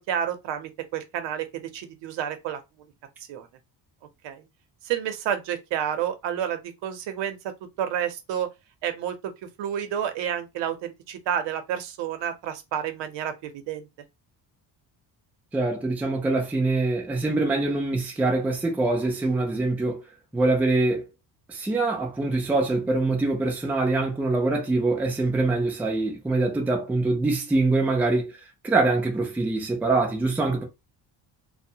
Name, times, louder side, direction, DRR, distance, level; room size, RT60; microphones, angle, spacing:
voice 1, 0.1-1.5 1.7-2.6 3.3-3.5 4.2-4.4 4.8-7.4 7.8-8.5 8.8-9.3 9.6-13.9, right 9 dB, 80° right, 0.7 m, -30 dB
voice 2, 15.5-20.0 20.3-21.1 21.5-28.3 28.6-30.6, right 2 dB, 5° right, 0.4 m, -24 dB
2.7 x 2.1 x 2.7 m
cardioid pair, 175°, 43 cm